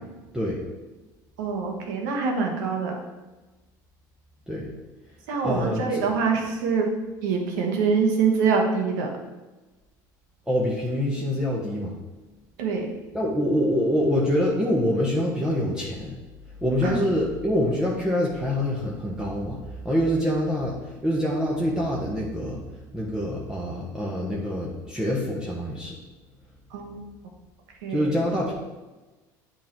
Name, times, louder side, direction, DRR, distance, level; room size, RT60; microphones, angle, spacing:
voice 1, 1.4-3.0 5.3-6.9 7.2-9.1 12.6-12.9 16.8-17.0 26.7-27.0 27.8-28.1, right 5 dB, 80° right, 1 dB, 1.4 m, -25 dB
voice 2, 5.4-6.0 10.5-12.0 13.1-16.2 16.6-22.6 22.9-26.0 27.9-28.5, equal, 5° right, -5 dB, 1.3 m, -25 dB
8.3 x 3.7 x 4.6 m, 1.2 s
supercardioid pair, 90°, 10 cm